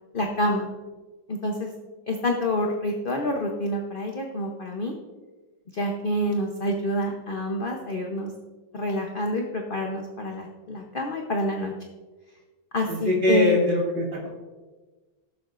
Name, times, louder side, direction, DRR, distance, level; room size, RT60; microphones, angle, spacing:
voice 1, 0.1-0.7 1.3-1.7 2.1-4.9 5.7-8.3 8.7-11.7 12.7-13.6, left 1 dB, 45° left, 1 dB, 0.7 m, -27 dB
voice 2, 12.9-14.3, equal, 30° right, -4 dB, 2.5 m, -22 dB
17.5 x 7.0 x 2.5 m, 1.3 s
omnidirectional pair, 2.0 m